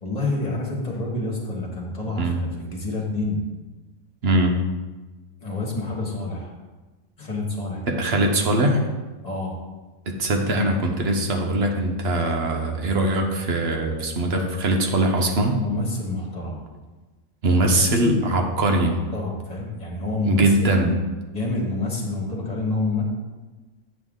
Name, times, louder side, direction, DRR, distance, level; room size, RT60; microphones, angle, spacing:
voice 1, 0.0-3.4 5.4-6.6 7.2-8.0 9.2-9.6 15.6-16.6 17.5-17.6 17.9-18.2 18.8-20.7 21.3-23.0, left 2 dB, 30° left, -2 dB, 1.6 m, -28 dB
voice 2, 4.2-4.6 7.9-8.9 10.1-15.6 17.4-18.9 20.2-21.0, right 1 dB, 55° right, 2 dB, 1.1 m, -21 dB
8.5 x 5.8 x 3.7 m, 1.2 s
omnidirectional pair, 1.4 m